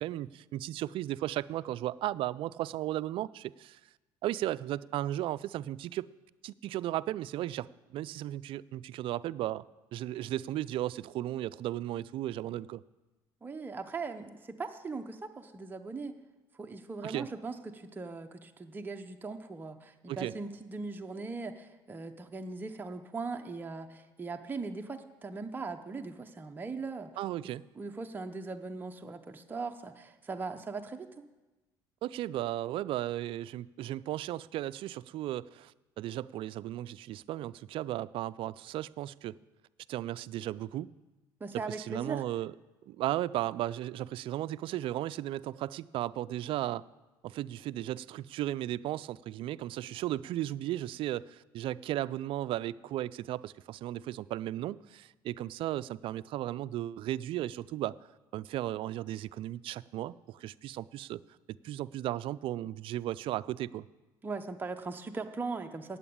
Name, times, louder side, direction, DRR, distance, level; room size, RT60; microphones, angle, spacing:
voice 1, 0.0-3.8 4.2-6.1 6.4-9.6 9.9-12.8 17.0-17.3 20.1-20.3 27.2-27.6 32.0-39.4 39.9-40.9 41.8-42.5 42.9-46.9 47.2-58.0 58.3-61.2 61.6-63.9, right 14 dB, 60° right, 17 dB, 0.4 m, -35 dB
voice 2, 13.4-16.1 16.6-27.1 27.8-31.1 41.4-42.2 64.2-66.0, right 4 dB, 20° right, 5 dB, 0.8 m, -39 dB
8.9 x 8.6 x 8.6 m, 1.1 s
supercardioid pair, 90°, 10 cm